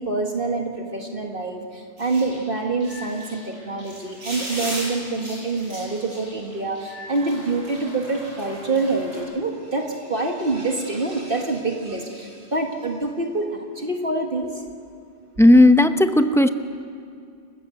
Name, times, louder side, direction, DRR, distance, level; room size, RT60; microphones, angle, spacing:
voice 1, 0.0-14.5, right 3 dB, 50° right, 2 dB, 1.9 m, -26 dB
sound 1, 2.0-9.2, equal, 85° right, 7.4 m, -37 dB
voice 2, 15.4-16.5, left 1 dB, 5° left, 8 dB, 0.6 m, -13 dB
29.5 x 15.5 x 7.8 m, 2.4 s
omnidirectional pair, 1.2 m